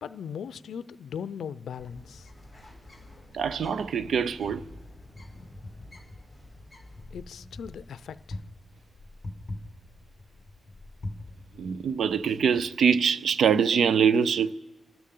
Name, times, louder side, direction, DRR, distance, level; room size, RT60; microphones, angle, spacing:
voice 1, 0.0-2.3 7.1-8.4, left 7 dB, 85° left, 0.5 m, -38 dB
Bird, 1.8-7.7, left 1 dB, 5° right, 3.7 m, -49 dB
voice 2, 3.3-4.6 11.5-14.5, right 7 dB, 65° right, 0.4 m, -24 dB
Wind, 4.0-12.9, left 2 dB, 20° left, 1.7 m, -44 dB
27.5 x 13.0 x 3.8 m
wide cardioid pair, 175°, 0 cm